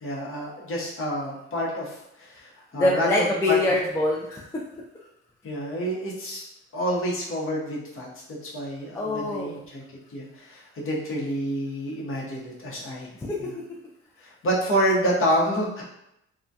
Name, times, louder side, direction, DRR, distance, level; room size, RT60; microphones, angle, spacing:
voice 1, 0.0-3.6 5.4-6.4 6.7-8.1 8.4-9.8 10.1-13.1 13.4-13.5 14.2-15.8, equal, 45° left, -4 dB, 0.8 m, -28 dB
voice 2, 2.7-4.6 8.9-9.6 13.2-13.4, left 2 dB, 10° left, -3 dB, 0.3 m, -24 dB
2.2 x 2.2 x 2.6 m, 0.82 s
cardioid pair, 90°, 30 cm